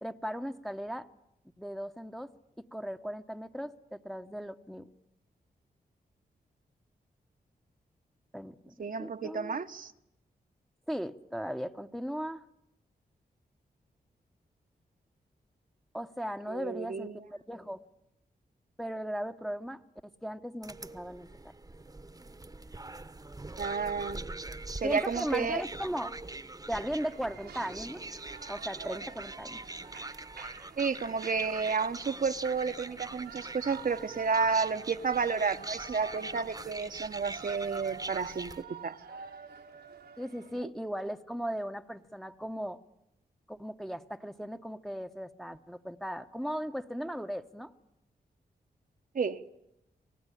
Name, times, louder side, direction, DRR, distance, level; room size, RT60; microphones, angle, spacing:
voice 1, 0.0-1.1 1.6-2.3 2.6-4.9 8.3-8.6 9.0-9.6 10.9-12.4 15.9-17.8 18.8-21.3 24.8-26.2 26.7-28.0 28.5-29.6 40.2-42.8 43.5-47.7, equal, ahead, 7 dB, 1.0 m, -37 dB
voice 2, 8.8-9.9 16.5-17.2 23.6-24.2 24.8-25.6 30.8-39.0 49.1-49.5, right 5 dB, 55° right, 7 dB, 1.0 m, -31 dB
sound 1, 20.6-38.6, right 2 dB, 20° right, 1.1 m, -43 dB
Shout / Cheering, 26.7-40.6, right 6 dB, 75° right, 1.4 m, -49 dB
26.5 x 18.0 x 10.0 m, 0.87 s
cardioid pair, 60°, 17 cm